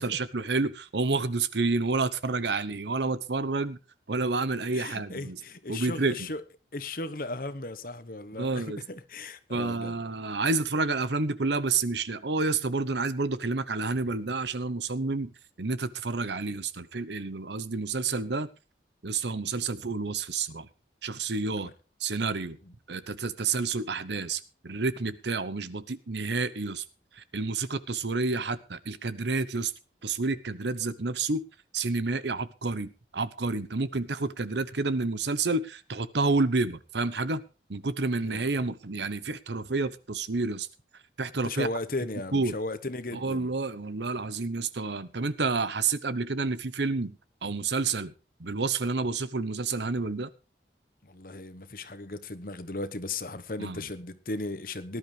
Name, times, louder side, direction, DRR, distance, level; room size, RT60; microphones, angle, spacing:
voice 1, 0.0-3.8 4.1-5.4 5.7-6.3 8.3-8.8 9.5-15.3 15.6-18.5 19.0-20.7 21.0-21.7 22.0-22.6 22.9-26.8 27.1-29.7 30.0-31.4 31.7-37.4 37.7-40.7 41.2-41.7 42.3-42.6 43.2-48.1 48.4-50.3 53.6-53.8, right 3 dB, 75° right, 1.0 m, -29 dB
voice 2, 4.7-6.4 6.7-10.0 21.6-21.7 22.6-22.7 38.2-38.5 41.4-43.5 51.0-55.0, left 2 dB, 50° left, 1.2 m, -36 dB
18.5 x 11.5 x 3.4 m
head